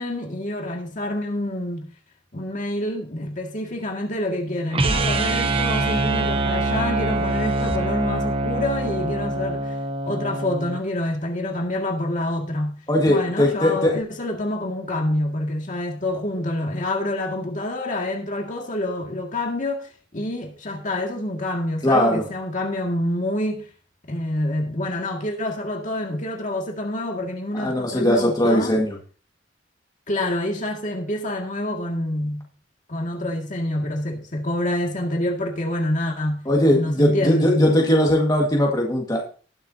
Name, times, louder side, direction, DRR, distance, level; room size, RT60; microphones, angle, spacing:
voice 1, 0.0-1.9 2.3-9.8 10.1-12.8 13.1-23.7 24.1-28.8 30.1-32.4 32.9-36.4 36.7-37.8, left 1 dB, 45° left, 2.0 m, -27 dB
sound 1, 4.7-10.8, right 2 dB, 30° right, 0.8 m, -24 dB
voice 2, 12.9-14.0 21.8-22.2 27.5-29.0 36.5-39.2, left 1 dB, 20° left, 1.7 m, -19 dB
19.5 x 6.9 x 2.8 m
head